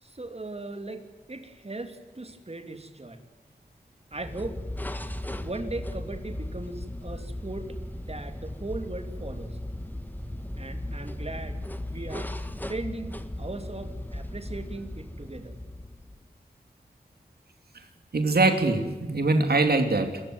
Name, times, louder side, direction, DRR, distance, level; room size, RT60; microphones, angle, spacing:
voice 1, 0.0-3.2 4.1-4.6 5.4-9.6 10.6-11.6 11.9-15.6, right 2 dB, 40° right, 7 dB, 2.9 m, -38 dB
sound 1, 4.1-16.3, left 1 dB, 10° left, 1.5 m, -37 dB
voice 2, 18.1-20.2, right 3 dB, 75° right, 6 dB, 3.0 m, -23 dB
27.5 x 15.0 x 9.5 m, 1.3 s
wide cardioid pair, 65°, 16 cm